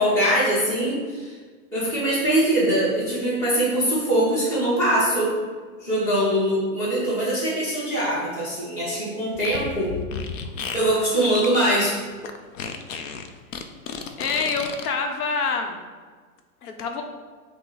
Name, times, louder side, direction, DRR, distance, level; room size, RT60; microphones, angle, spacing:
voice 1, 0.0-1.3 1.7-5.3 5.8-9.9 10.7-12.0, right 1 dB, 5° left, -10 dB, 0.6 m, -22 dB
Fart, 9.3-14.9, left 6 dB, 60° left, 0.5 m, -34 dB
voice 2, 14.2-15.8 16.6-17.0, left 4 dB, 80° left, 4 dB, 0.8 m, -26 dB
5.6 x 2.0 x 3.9 m, 1.5 s
supercardioid pair, 170°, 44 cm